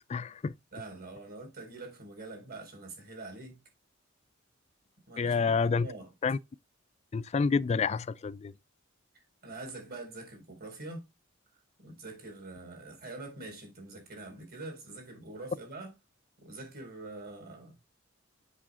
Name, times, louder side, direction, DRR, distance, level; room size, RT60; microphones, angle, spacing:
voice 1, 0.1-0.5 5.2-5.9 6.2-6.4 7.1-8.5, left 5 dB, 30° left, 0.3 m, -28 dB
voice 2, 0.7-3.6 5.1-5.4 5.8-6.1 9.4-11.0 11.8-16.0 16.4-17.8, right 2 dB, 50° right, 4.2 m, -44 dB
7.5 x 6.3 x 3.6 m
head